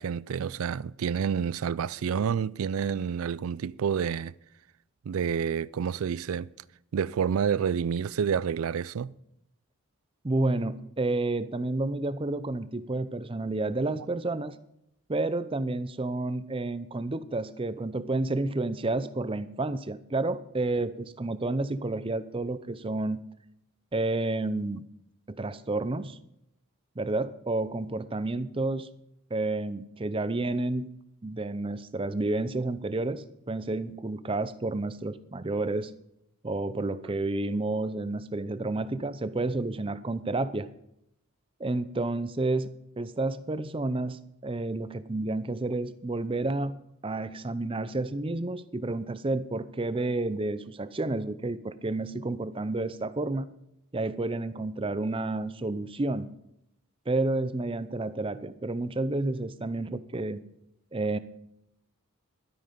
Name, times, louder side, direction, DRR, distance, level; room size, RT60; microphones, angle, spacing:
voice 1, 0.0-4.3 5.1-6.5 6.9-9.1, right 7 dB, 80° right, 0.4 m, -29 dB
voice 2, 10.2-14.6 15.1-23.2 23.9-24.8 25.3-26.2 27.0-28.9 29.3-30.9 31.2-35.9 36.4-40.7 41.6-46.7 47.0-53.5 53.9-56.3 57.1-60.4 60.9-61.2, right 2 dB, 25° right, 0.5 m, -30 dB
12.5 x 9.2 x 5.1 m
head